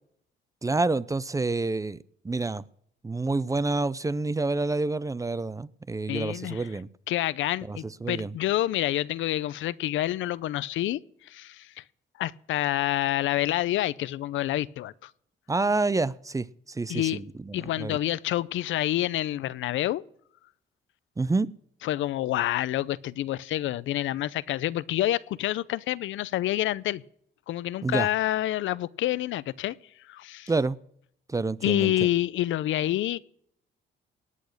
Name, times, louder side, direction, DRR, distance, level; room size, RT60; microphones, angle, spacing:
voice 1, 0.6-2.0 2.2-2.6 3.0-6.9 7.7-8.3 15.5-18.0 21.2-21.5 27.8-28.1 30.5-30.8 31.3-31.9, right 3 dB, 15° right, 0.5 m, -28 dB
voice 2, 6.1-6.7 7.1-11.8 12.2-15.1 16.9-17.2 17.5-20.0 21.8-27.0 27.5-29.7 30.1-30.5 31.6-33.2, left 14 dB, 80° left, 0.6 m, -28 dB
18.5 x 8.5 x 6.5 m
cardioid pair, 90°, 20 cm